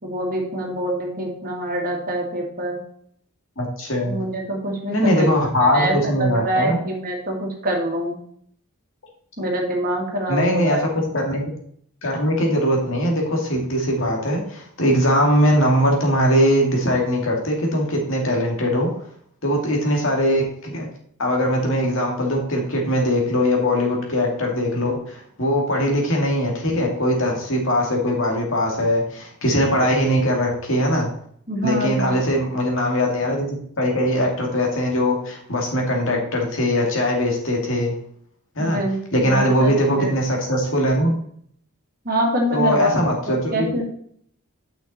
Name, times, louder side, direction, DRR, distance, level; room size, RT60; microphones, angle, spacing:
voice 1, 0.0-2.8 4.0-5.3 5.7-8.2 9.4-10.8 31.5-32.2 38.6-40.1 42.0-42.9 43.3-43.9, right 1 dB, 40° right, 0 dB, 2.1 m, -25 dB
voice 2, 3.6-4.2 4.9-6.8 10.3-10.8 11.1-11.4 12.0-18.9 19.4-20.9 21.2-31.1 31.6-37.9 38.6-38.8 39.1-41.1 42.5-43.7, equal, 60° left, 0 dB, 2.3 m, -21 dB
9.6 x 5.9 x 4.3 m, 0.64 s
head